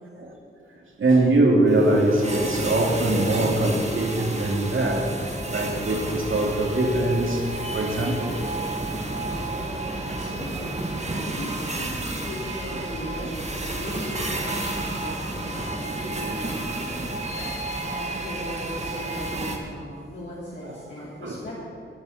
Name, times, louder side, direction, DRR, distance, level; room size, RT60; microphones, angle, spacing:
voice 1, 1.0-5.1 5.5-8.4 9.0-9.1 12.7-12.8 13.2-13.3 17.0-17.1 17.4-18.0 20.6-20.7 21.2-21.4, right 2 dB, 70° right, -1 dB, 2.7 m, -23 dB
sound 1, 1.7-19.6, right 2 dB, 30° right, 1.9 m, -31 dB
voice 2, 9.1-17.3 17.8-21.5, left 1 dB, 60° left, -7 dB, 2.9 m, -38 dB
20.5 x 7.0 x 6.6 m, 2.5 s
wide cardioid pair, 80°, 21 cm